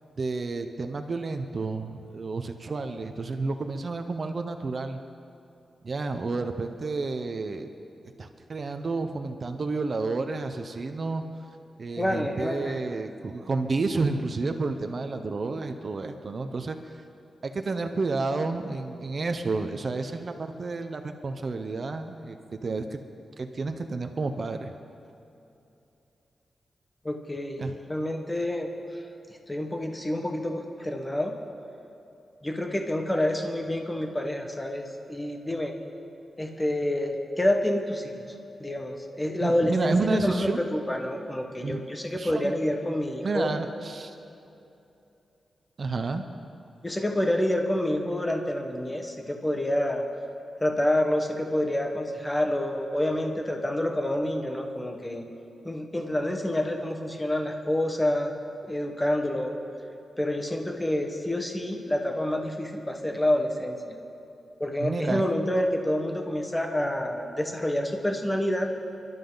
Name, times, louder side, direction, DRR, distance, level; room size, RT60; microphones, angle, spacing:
voice 1, 0.2-5.0 5.8-7.7 8.2-11.2 11.8-16.8 17.4-22.4 22.6-23.0 23.4-24.7 27.6-27.7 39.4-40.6 41.6-41.8 42.1-42.5 43.2-44.1 45.8-46.3 64.8-65.2, right 3 dB, 40° right, 7 dB, 0.8 m, -30 dB
voice 2, 12.0-12.8 27.0-28.7 29.5-31.3 32.4-35.7 36.4-38.1 38.6-43.5 46.8-50.0 50.6-55.2 55.6-58.3 58.6-59.5 60.2-64.0 64.6-68.7, left 1 dB, 15° left, 3 dB, 1.4 m, -28 dB
28.0 x 12.5 x 4.0 m, 2.8 s
wide cardioid pair, 125°, 0 cm